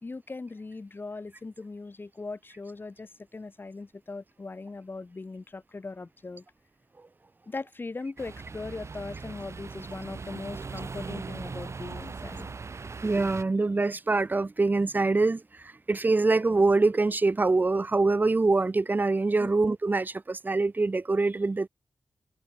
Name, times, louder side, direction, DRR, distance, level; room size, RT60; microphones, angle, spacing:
voice 1, 0.0-6.4 7.5-12.5 19.4-19.5, left 3 dB, 35° left, 3.4 m, -39 dB
sound 1, 8.2-13.4, right 4 dB, 45° right, 4.2 m, -39 dB
voice 2, 13.0-15.4 15.9-21.7, right 3 dB, 30° right, 1.2 m, -24 dB
wide cardioid pair, 105°, 6 cm